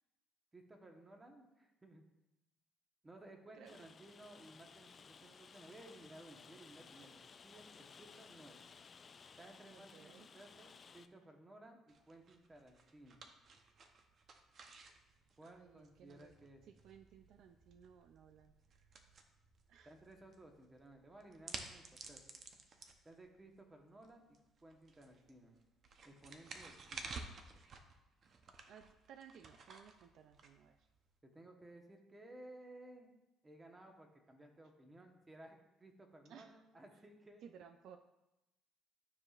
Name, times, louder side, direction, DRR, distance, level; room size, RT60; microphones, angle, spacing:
voice 1, 0.5-2.0 3.0-8.6 9.4-13.2 15.4-16.6 19.8-22.4 23.0-25.6 26.0-27.1 31.2-33.2 33.4-37.4, right 1 dB, 20° right, 3 dB, 1.1 m, -58 dB
Rain, 3.7-11.1, left 5 dB, 35° left, 0.3 m, -59 dB
voice 2, 9.7-10.3 15.4-16.3 16.6-18.9 19.7-19.9 28.7-30.9 36.2-36.6 37.4-38.0, right 8 dB, 65° right, 8 dB, 0.3 m, -59 dB
sound 1, 11.9-31.1, right 4 dB, 45° right, 0.7 m, -54 dB
12.0 x 4.9 x 2.4 m, 0.94 s
cardioid pair, 115°, 0 cm